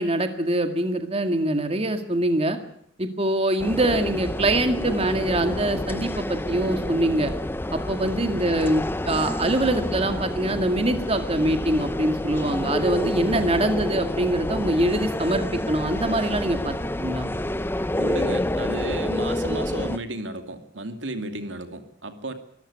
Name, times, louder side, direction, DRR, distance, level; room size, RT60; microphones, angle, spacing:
voice 1, 0.0-2.6 3.0-7.3 7.7-17.3, right 1 dB, 30° right, 7 dB, 2.1 m, -24 dB
sound 1, 3.6-20.0, left 1 dB, 10° left, 0.8 m, -28 dB
voice 2, 8.0-8.4 13.3-13.6 18.0-22.3, right 2 dB, 80° right, 8 dB, 2.5 m, -33 dB
24.5 x 14.5 x 8.7 m, 0.65 s
head